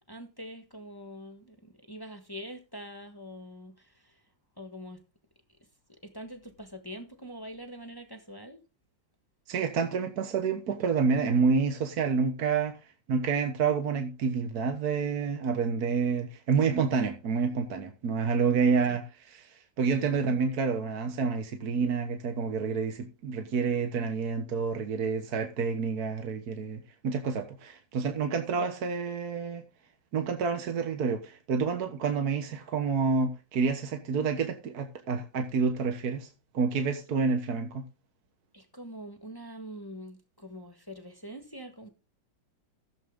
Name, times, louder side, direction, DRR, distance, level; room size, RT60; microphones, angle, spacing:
voice 1, 0.1-4.2 4.6-5.0 5.9-8.6 18.9-19.0 28.5-28.7 38.5-41.9, equal, 15° left, 1.3 m, -44 dB
voice 2, 9.5-12.8 13.1-19.5 19.8-29.6 30.1-36.3 36.5-37.8, right 5 dB, 55° right, 1.7 m, -28 dB
15.0 x 8.0 x 3.7 m
omnidirectional pair, 2.0 m